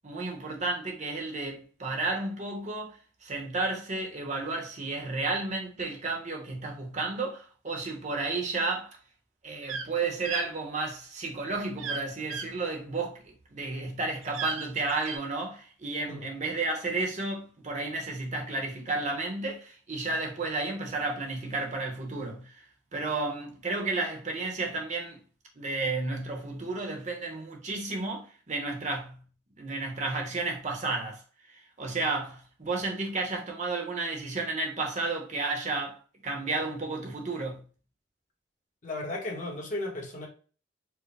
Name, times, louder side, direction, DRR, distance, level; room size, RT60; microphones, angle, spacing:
voice 1, 0.0-3.0 3.2-9.0 9.4-22.5 22.9-25.2 25.6-29.2 29.6-31.2 31.5-36.0 36.2-37.6, right 3 dB, 35° right, 0.8 m, -32 dB
sound 1, 9.6-9.9 10.2-10.5 11.8-12.0 12.3-12.5 14.2-15.2, right 5 dB, 75° right, 0.5 m, -35 dB
voice 2, 38.8-40.3, left 2 dB, 40° left, 1.1 m, -35 dB
4.6 x 2.1 x 3.3 m
head